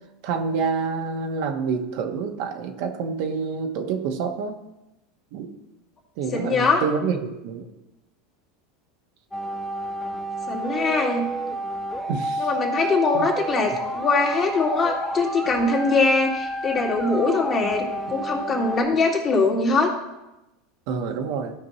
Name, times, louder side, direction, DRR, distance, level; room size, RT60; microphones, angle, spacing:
voice 1, 0.2-4.6 5.3-5.5 6.2-7.7 12.1-12.5 12.7-13.3 20.9-21.5, right 5 dB, 65° right, 4 dB, 1.2 m, -27 dB
voice 2, 6.3-6.8 10.5-11.3 12.4-19.9, left 3 dB, 35° left, -1 dB, 2.2 m, -22 dB
sound 1, 9.3-18.8, right 2 dB, 10° left, 1.3 m, -30 dB
14.0 x 5.2 x 3.1 m, 0.95 s
hypercardioid pair, 95°, 0 cm